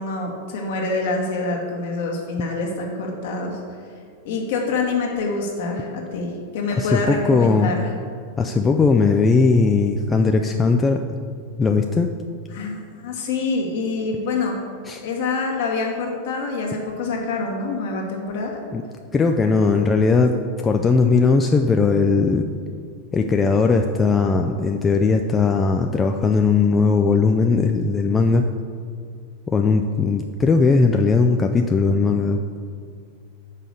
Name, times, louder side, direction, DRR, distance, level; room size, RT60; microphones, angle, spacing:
voice 1, 0.0-3.6 4.2-7.9 12.5-14.6 15.0-18.6, left 3 dB, 55° left, 1 dB, 1.4 m, -26 dB
voice 2, 6.8-7.7 8.4-11.0 11.6-12.1 14.9-15.0 18.7-18.8 19.1-20.4 20.6-22.5 23.1-28.5 29.5-32.6, left 4 dB, 15° left, 4 dB, 0.4 m, -18 dB
5.6 x 5.1 x 6.6 m, 2.2 s
figure-of-eight pair, 90°, 0 cm